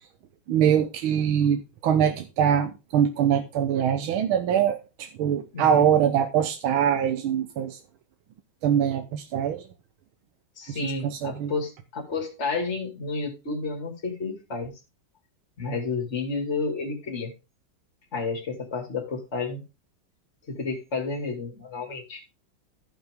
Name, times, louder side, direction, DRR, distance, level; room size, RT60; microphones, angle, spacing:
voice 1, 0.5-7.8 8.6-9.7 10.7-11.5, right 9 dB, 90° right, 1.7 m, -23 dB
voice 2, 5.5-5.9 10.6-14.7 15.6-17.3 18.1-19.6 20.5-22.2, left 4 dB, 35° left, 2.7 m, -31 dB
14.5 x 6.0 x 3.5 m
omnidirectional pair, 2.2 m